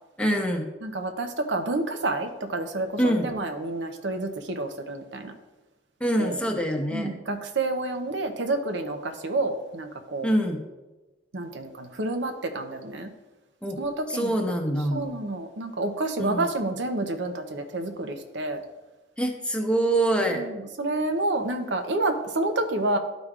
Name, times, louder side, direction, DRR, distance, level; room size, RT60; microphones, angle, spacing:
voice 1, 0.2-0.7 3.0-3.3 6.0-7.1 10.2-10.6 13.6-13.8 14.1-15.1 16.2-16.5 19.2-20.4, right 1 dB, 5° left, 2 dB, 0.8 m, -25 dB
voice 2, 0.8-5.3 6.2-6.4 6.9-10.3 11.3-13.1 13.8-14.3 14.9-18.6 20.3-23.0, right 2 dB, 75° right, 6 dB, 0.7 m, -29 dB
12.0 x 5.1 x 2.4 m, 1.1 s
head